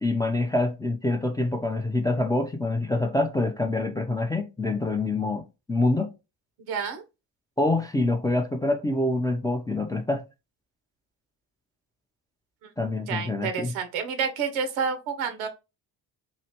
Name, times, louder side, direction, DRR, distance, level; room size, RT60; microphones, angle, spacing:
voice 1, 0.0-6.1 7.6-10.2 12.8-13.7, left 2 dB, 10° left, 0.3 m, -26 dB
voice 2, 6.7-7.0 13.1-15.5, right 6 dB, 80° right, 0.8 m, -29 dB
3.1 x 2.5 x 2.8 m
hypercardioid pair, 50°, 48 cm